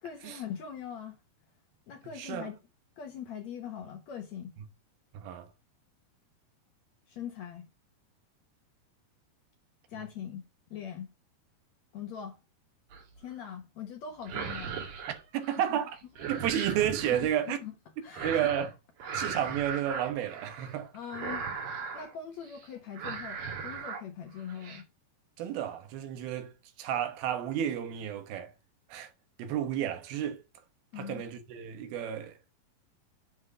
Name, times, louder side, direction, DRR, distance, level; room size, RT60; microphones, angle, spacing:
voice 1, 0.0-1.2 1.9-2.6 3.0-4.6 7.1-7.7 9.9-11.1 11.9-12.4 13.2-14.9 15.7-15.8 17.1-17.7 18.0-18.6 20.9-21.4 21.9-24.9 30.9-31.2, left 8 dB, 65° left, 1.9 m, -42 dB
voice 2, 2.2-2.5 5.1-5.5 15.3-16.0 16.3-17.6 18.2-18.7 19.1-20.9 25.4-26.5 26.8-28.5 28.9-29.1 29.4-30.4 31.0-32.5, right 10 dB, 80° right, 3.0 m, -31 dB
sound 1, 12.9-13.3 14.1-15.7 16.0-17.3 18.1-18.7 19.0-20.8 21.1-22.1 22.4-22.7 22.9-24.0 24.4-24.8, right 6 dB, 65° right, 3.5 m, -38 dB
7.8 x 3.6 x 6.6 m
omnidirectional pair, 4.3 m